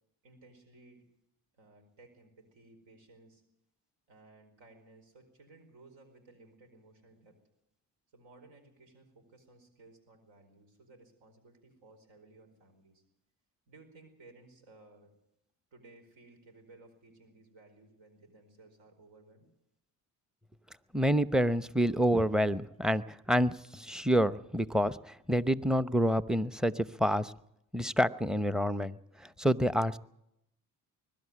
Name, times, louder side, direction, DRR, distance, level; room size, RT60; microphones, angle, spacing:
voice 1, 0.2-1.0 1.5-3.4 4.1-7.4 8.1-13.0 13.7-15.1 15.7-19.5, right 2 dB, 75° right, 6 dB, 4.9 m, -58 dB
voice 2, 20.9-27.3 27.7-29.0 29.4-30.0, equal, ahead, 15 dB, 0.8 m, -28 dB
21.5 x 12.5 x 9.8 m, 0.81 s
supercardioid pair, 50°, 46 cm